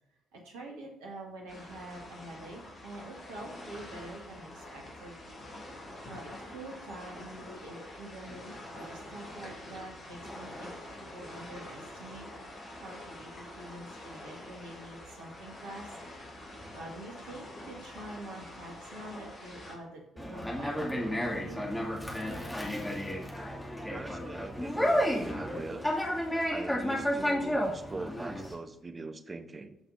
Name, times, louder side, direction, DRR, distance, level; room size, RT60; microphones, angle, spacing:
voice 1, 0.3-5.2 6.1-10.8 11.1-12.3 12.7-21.6, right 1 dB, 70° right, 0 dB, 2.0 m, -46 dB
sound 1, 1.5-19.7, left 1 dB, 45° left, 2.8 m, -46 dB
Conversation, 20.2-28.5, equal, 10° left, 2.5 m, -32 dB
voice 2, 23.9-24.8 25.3-25.9 26.5-29.8, right 3 dB, 30° right, 9 dB, 0.9 m, -42 dB
14.0 x 6.0 x 2.7 m, 0.89 s
figure-of-eight pair, 40°, 0 cm